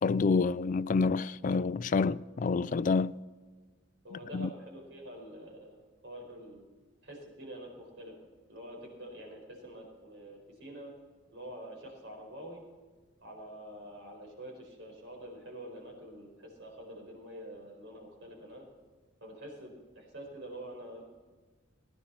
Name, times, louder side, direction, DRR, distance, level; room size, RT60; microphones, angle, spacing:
voice 1, 0.0-3.2 4.3-4.5, left 4 dB, 45° left, 0.4 m, -28 dB
voice 2, 4.0-6.6 7.0-8.1 8.5-10.9 11.3-12.6 13.2-18.7 19.2-21.0, right 1 dB, 70° right, 4.6 m, -46 dB
19.0 x 10.5 x 4.2 m
head